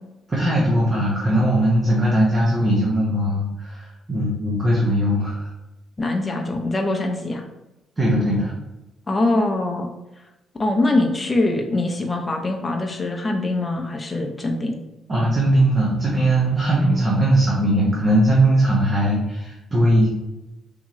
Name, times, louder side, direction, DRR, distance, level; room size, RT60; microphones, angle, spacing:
voice 1, 0.3-5.5 8.0-8.5 15.1-20.1, right 1 dB, 30° right, -4 dB, 0.8 m, -19 dB
voice 2, 6.0-7.4 9.1-9.9 10.6-14.8, left 2 dB, 25° left, 2 dB, 0.6 m, -23 dB
3.5 x 2.9 x 3.0 m, 0.96 s
cardioid pair, 90°, 0 cm